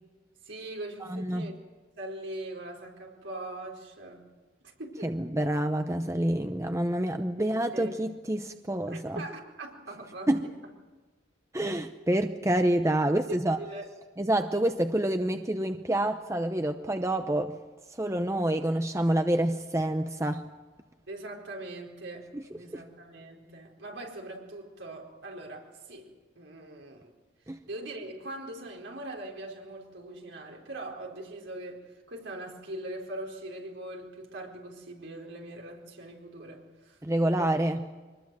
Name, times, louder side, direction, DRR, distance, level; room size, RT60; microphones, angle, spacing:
voice 1, 0.4-1.6 2.0-4.3 4.6-5.1 7.4-7.9 8.9-10.5 13.6-13.9 21.1-27.1 27.6-37.0 37.4-37.5, right 1 dB, 70° right, 0 dB, 4.5 m, -41 dB
voice 2, 1.1-1.5 5.0-9.2 10.3-10.5 11.5-13.6 14.2-17.6 18.0-20.4 22.3-22.4 22.7-22.8 27.5-27.6 37.0-37.8, right 1 dB, 15° right, 7 dB, 0.7 m, -27 dB
24.0 x 20.0 x 7.7 m, 1.3 s
head